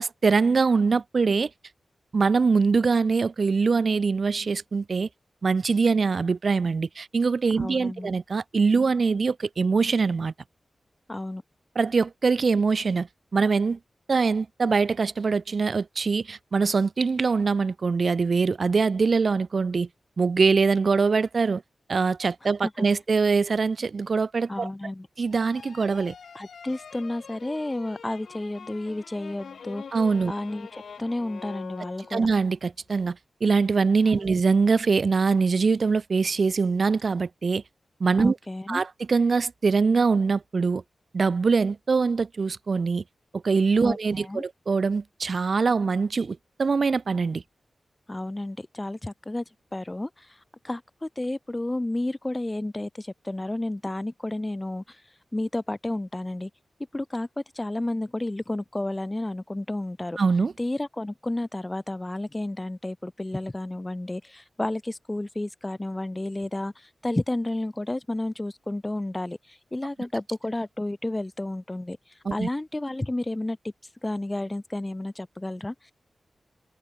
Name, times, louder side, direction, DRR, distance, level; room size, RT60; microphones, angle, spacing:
voice 1, 0.0-1.5 2.1-5.1 5.4-10.3 11.8-13.1 13.3-13.8 14.1-19.9 20.2-21.6 21.9-24.7 25.2-26.1 29.9-30.3 32.1-37.6 38.0-38.4 38.7-40.8 41.1-43.0 43.3-47.4 60.2-60.5 72.3-72.5, right 4 dB, 55° right, 0.4 m, -23 dB
voice 2, 7.6-8.1 11.1-11.4 22.4-22.9 24.5-25.1 26.3-29.8 30.3-32.3 34.1-34.3 38.2-38.8 43.8-44.4 48.1-49.4 49.7-50.4 50.6-55.0 55.3-56.5 56.9-60.2 60.6-72.0 72.3-73.7 74.0-75.9, left 1 dB, 20° left, 0.4 m, -31 dB
sound 1, 25.3-32.5, left 6 dB, 85° left, 1.3 m, -44 dB
wide cardioid pair, 95°, 0 cm